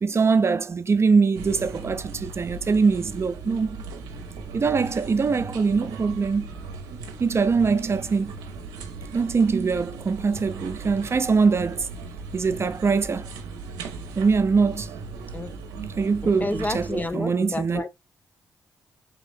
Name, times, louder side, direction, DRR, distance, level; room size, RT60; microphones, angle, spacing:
voice 1, 0.0-3.8 4.5-6.5 7.2-8.3 9.1-11.9 12.3-13.3 14.2-14.9 16.0-17.8, right 5 dB, 40° right, 0.5 m, -22 dB
sound 1, 1.3-17.1, right 4 dB, 90° right, 0.6 m, -38 dB
voice 2, 16.2-17.9, left 2 dB, 25° left, 0.4 m, -30 dB
3.6 x 2.5 x 3.8 m
supercardioid pair, 50°, 7 cm